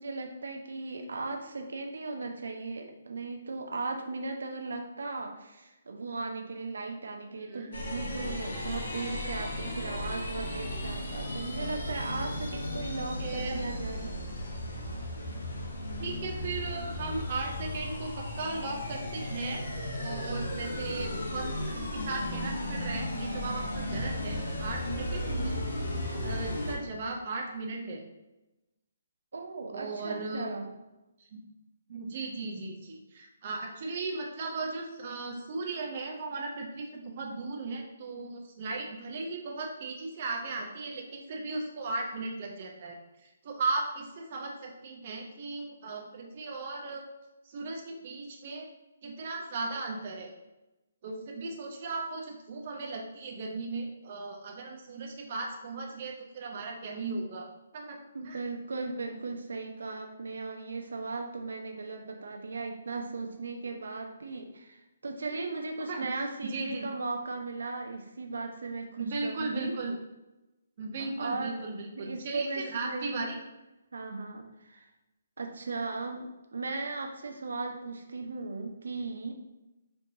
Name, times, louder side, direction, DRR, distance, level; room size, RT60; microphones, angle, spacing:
voice 1, 0.0-14.2 29.3-30.7 58.1-69.7 71.2-71.6 71.9-73.3 73.9-74.9 75.4-76.2 76.5-79.3, right 3 dB, 85° right, 3 dB, 0.6 m, -37 dB
voice 2, 7.4-7.7 13.2-13.6 16.0-19.6 20.0-25.6 26.2-28.0 29.7-30.5 31.3-31.4 31.9-43.0 43.4-47.1 47.5-48.7 49.0-50.3 51.0-57.5 57.7-58.0 58.2-58.4 65.9-66.9 69.0-69.9 70.8-73.4, right 3 dB, 30° right, 0 dB, 0.4 m, -36 dB
sound 1, 7.7-26.7, left 1 dB, 75° left, 1.0 m, -35 dB
4.5 x 2.6 x 2.6 m, 1.0 s
hypercardioid pair, 175°, 0 cm